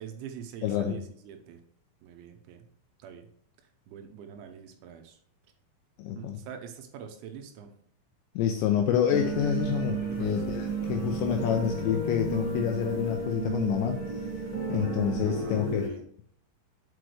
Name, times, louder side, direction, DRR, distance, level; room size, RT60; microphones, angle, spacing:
voice 1, 0.0-1.6 2.0-2.7 3.0-3.3 3.9-5.2 6.1-7.7 10.0-10.5 15.2-16.0, right 8 dB, 85° right, 6 dB, 3.0 m, -44 dB
voice 2, 0.6-1.0 6.0-6.4 8.4-14.0 14.7-15.9, left 9 dB, 85° left, 4 dB, 2.6 m, -28 dB
sound 1, 9.1-15.9, right 3 dB, 25° left, 2.6 m, -32 dB
sound 2, 10.1-15.7, left 9 dB, 60° left, 3.4 m, -44 dB
7.7 x 5.0 x 3.2 m, 0.63 s
omnidirectional pair, 5.6 m